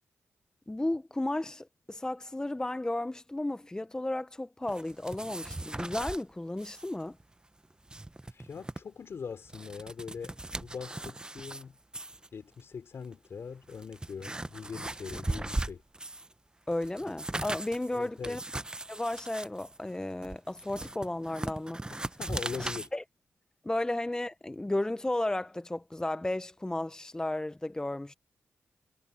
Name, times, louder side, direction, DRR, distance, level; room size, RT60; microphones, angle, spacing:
voice 1, 0.7-7.2 16.7-18.4 18.9-22.2 22.6-23.0 23.6-28.1, left 1 dB, 15° left, 0.7 m, -34 dB
sound 1, 4.7-6.2 6.6-6.9 7.2-7.3 7.7-8.8 9.3-11.6 11.9-12.3 13.0-13.1 13.6-16.3 16.7-22.9, right 2 dB, 15° right, 0.8 m, -38 dB
voice 2, 8.3-11.8 12.3-15.8 17.9-18.4 22.2-22.9, left 6 dB, 65° left, 4.4 m, -42 dB
cardioid pair, 65°, 5 cm